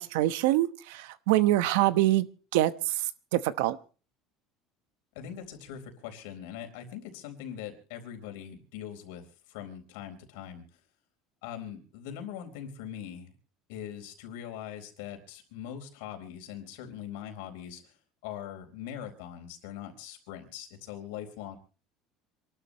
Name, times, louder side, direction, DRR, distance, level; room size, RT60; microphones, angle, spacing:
voice 1, 0.0-2.3 2.5-3.0 3.3-3.8, right 15 dB, 85° right, 14 dB, 1.0 m, -25 dB
voice 2, 5.1-9.2 9.5-10.6 11.4-13.3 13.7-17.9 18.2-21.6, left 9 dB, 85° left, 5 dB, 4.2 m, -41 dB
27.5 x 12.5 x 3.1 m, 0.36 s
cardioid pair, 145°, 0 cm